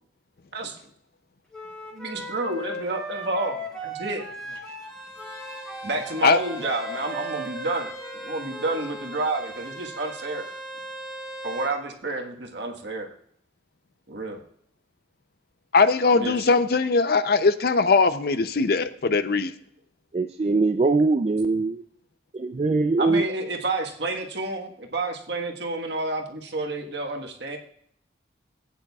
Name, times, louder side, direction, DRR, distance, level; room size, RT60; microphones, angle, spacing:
Wind instrument woodwind instrument, 1.5-9.1, equal, 5° left, 2.3 m, -37 dB
voice 1, 1.9-4.6 5.8-7.9 8.2-10.5 11.4-13.1 14.1-14.4 16.0-16.5 23.0-27.6, right 2 dB, 65° right, 2 dB, 1.4 m, -30 dB
Bowed string instrument, 4.8-11.8, right 1 dB, 20° left, 3.5 m, -39 dB
voice 2, 15.7-19.5, left 4 dB, 55° left, 12 dB, 0.5 m, -20 dB
voice 3, 20.1-21.8 22.3-23.3, right 3 dB, 35° right, 7 dB, 0.3 m, -22 dB
16.0 x 9.0 x 2.4 m, 0.68 s
head